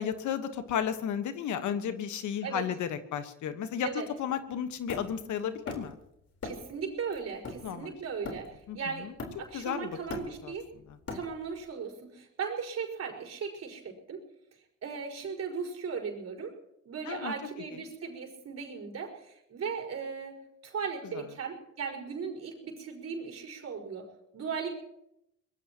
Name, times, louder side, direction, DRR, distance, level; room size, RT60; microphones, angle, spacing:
voice 1, 0.0-3.9 4.2-6.0 7.6-7.9 8.7-9.1 9.5-9.9 10.4-10.5 10.9-11.0 17.1-17.3 21.1-21.2, left 8 dB, 75° left, 9 dB, 1.4 m, -33 dB
Hammer, 4.9-6.0 6.4-6.8 7.1-8.7 9.2-9.6 9.9-11.6, left 3 dB, 50° left, 4.1 m, -40 dB
voice 2, 6.4-9.1 9.4-10.6 11.1-14.2 14.8-16.5 16.8-20.4 20.6-24.7, right 6 dB, 55° right, 0 dB, 5.1 m, -37 dB
24.0 x 19.5 x 3.0 m, 0.81 s
cardioid pair, 90°, 30 cm